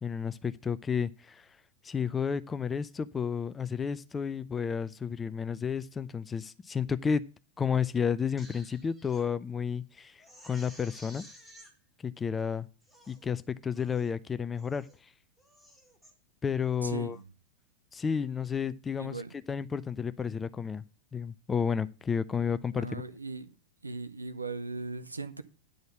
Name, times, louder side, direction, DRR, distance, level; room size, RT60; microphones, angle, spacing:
voice 1, 0.0-1.5 1.8-7.2 7.6-11.2 12.0-12.7 13.1-14.9 16.4-17.2 17.9-19.2 19.5-20.8 21.1-23.0, left 6 dB, 15° left, 0.5 m, -31 dB
Crying sobbing, 8.2-9.2 9.7-9.8 10.2-11.7 12.4-12.5 12.8-13.2 13.7-14.1 14.5-15.0 15.4-16.1 16.6-16.9, equal, 5° right, 1.7 m, -54 dB
voice 2, 16.8-17.2 19.0-19.3 22.7-23.5 23.8-25.4, right 3 dB, 80° right, 0.7 m, -38 dB
10.0 x 4.0 x 6.5 m
figure-of-eight pair, 90°, 0 cm